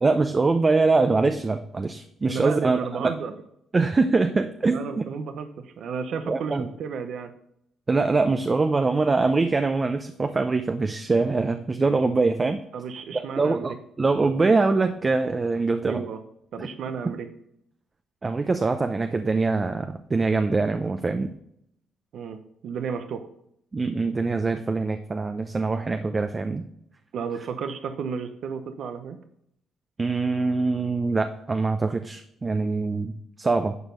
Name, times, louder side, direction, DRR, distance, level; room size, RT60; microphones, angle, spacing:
voice 1, 0.0-3.1 3.7-5.0 6.3-6.7 7.9-12.6 13.1-16.1 16.6-16.7 18.2-21.3 23.7-26.6 30.0-33.7, right 3 dB, 30° right, 7 dB, 0.7 m, -23 dB
voice 2, 2.3-3.3 4.6-7.3 12.7-13.8 15.8-16.2 16.5-17.3 22.1-23.2 27.1-29.2, right 6 dB, 70° right, 8 dB, 0.9 m, -33 dB
11.0 x 4.6 x 5.2 m, 0.72 s
cardioid pair, 90°, 0 cm